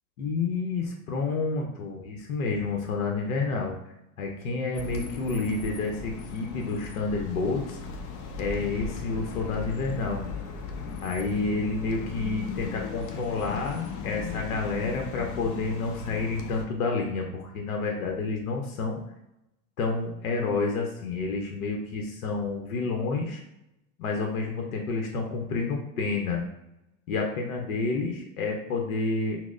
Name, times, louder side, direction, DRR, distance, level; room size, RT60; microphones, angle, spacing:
voice 1, 0.2-3.8 4.2-7.8 8.4-10.2 11.0-19.0 19.8-23.4 24.0-26.4 27.1-29.4, left 3 dB, 85° left, 1 dB, 0.8 m, -29 dB
sound 1, 4.7-16.6, left 5 dB, 55° left, 0.7 m, -37 dB
6.0 x 2.1 x 2.4 m, 0.86 s
hypercardioid pair, 110°, 42 cm